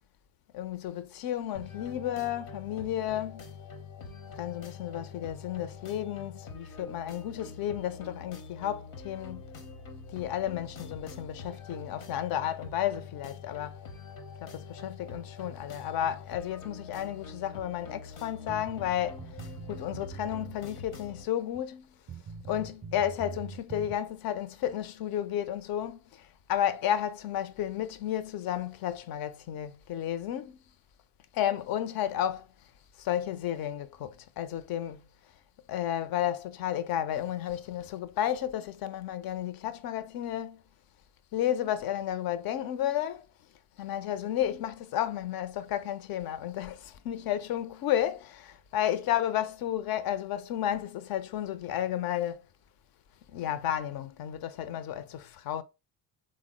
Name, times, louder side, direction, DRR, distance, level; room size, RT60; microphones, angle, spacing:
voice 1, 0.5-3.4 4.4-9.4 10.1-13.8 14.4-19.4 19.7-21.9 22.5-30.6 31.3-32.5 33.0-35.0 35.7-40.6 41.3-43.3 43.8-52.4 53.3-55.6, left 11 dB, 50° left, 0.5 m, -32 dB
sound 1, 1.5-21.2, left 4 dB, 75° left, 0.9 m, -45 dB
sound 2, 18.5-20.6 20.8-20.9 21.5-21.6 22.1-24.0, right 4 dB, 25° right, 0.5 m, -43 dB
3.6 x 2.1 x 3.5 m
hypercardioid pair, 55°, 47 cm